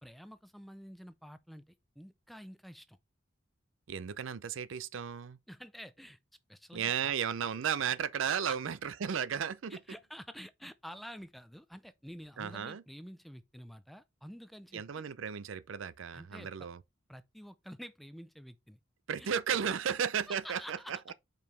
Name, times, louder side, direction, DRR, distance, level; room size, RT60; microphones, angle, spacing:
voice 1, 0.0-3.0 5.5-6.2 6.5-7.1 8.4-8.6 9.7-15.0 16.1-16.7 17.1-18.8 19.2-19.3 19.8-19.9 20.3-21.1, equal, ahead, 0.3 m, -49 dB
voice 2, 3.9-5.4 6.7-9.8 12.4-12.8 14.7-16.8 19.1-21.0, right 8 dB, 75° right, 0.4 m, -34 dB
5.3 x 4.7 x 4.4 m
head